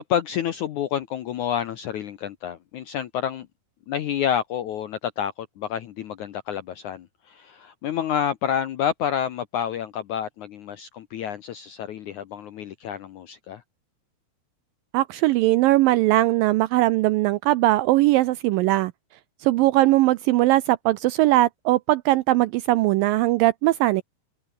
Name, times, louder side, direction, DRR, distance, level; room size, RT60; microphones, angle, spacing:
voice 1, 0.0-3.5 3.9-13.6, left 9 dB, 70° left, 1.9 m, -29 dB
voice 2, 14.9-18.9 19.4-24.0, right 17 dB, 90° right, 2.0 m, -20 dB
open air
omnidirectional pair, 4.8 m